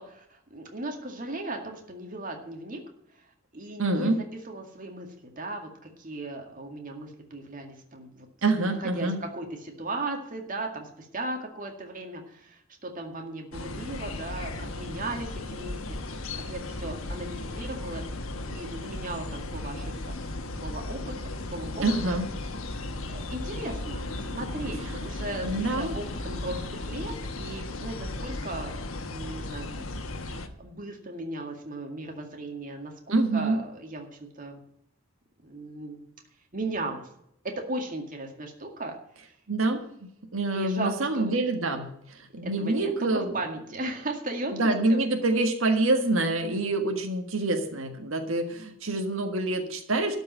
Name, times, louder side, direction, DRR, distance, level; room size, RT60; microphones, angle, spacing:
voice 1, 0.0-2.8 3.5-4.1 4.4-8.3 8.6-16.0 16.5-18.0 18.5-20.3 20.6-21.1 21.5-22.2 23.1-28.8 29.1-34.6 35.4-36.1 36.5-37.1 37.4-38.9 40.5-41.3 42.4-45.0, right 2 dB, 40° right, 3 dB, 2.1 m, -37 dB
voice 2, 3.8-4.2 8.4-9.2 21.8-22.3 25.4-26.0 33.1-33.6 39.5-39.8 40.3-43.3 44.5-50.2, right 2 dB, 85° right, 4 dB, 1.7 m, -26 dB
sound 1, 13.5-30.5, left 2 dB, 90° left, 1.2 m, -36 dB
12.5 x 5.4 x 8.9 m, 0.74 s
head